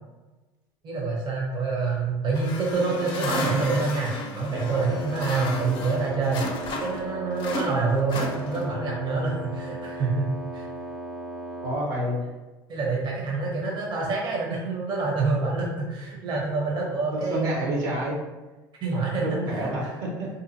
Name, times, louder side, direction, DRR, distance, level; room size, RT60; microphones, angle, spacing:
voice 1, 0.8-10.7 12.7-17.9 18.8-19.9, right 3 dB, 45° right, -2 dB, 0.7 m, -27 dB
sound 1, 2.3-7.1 7.4-8.9, left 2 dB, 45° left, 0.6 m, -34 dB
Wind instrument woodwind instrument, 4.5-11.9, right 1 dB, ahead, 0.3 m, -37 dB
voice 2, 11.6-12.2 17.1-18.2 19.0-20.3, right 1 dB, 75° right, -3 dB, 0.9 m, -29 dB
2.7 x 2.5 x 2.6 m, 1.2 s
hypercardioid pair, 70°, 11 cm